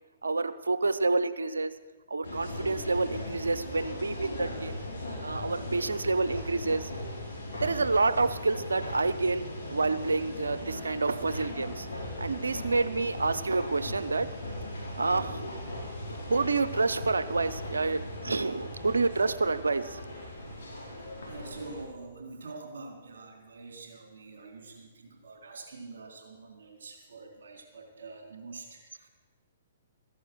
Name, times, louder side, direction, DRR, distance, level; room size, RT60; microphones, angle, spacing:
voice 1, 0.2-1.7 2.1-4.8 5.2-6.9 7.5-11.9 12.2-14.3 15.0-15.4 16.3-20.0, right 3 dB, 85° right, 13 dB, 0.8 m, -28 dB
sound 1, 2.2-21.8, left 1 dB, 75° left, 3.7 m, -38 dB
voice 2, 20.6-21.0 21.3-29.1, right 3 dB, 70° right, 2 dB, 3.8 m, -46 dB
15.0 x 11.0 x 6.3 m, 1.3 s
hypercardioid pair, 130°, 0 cm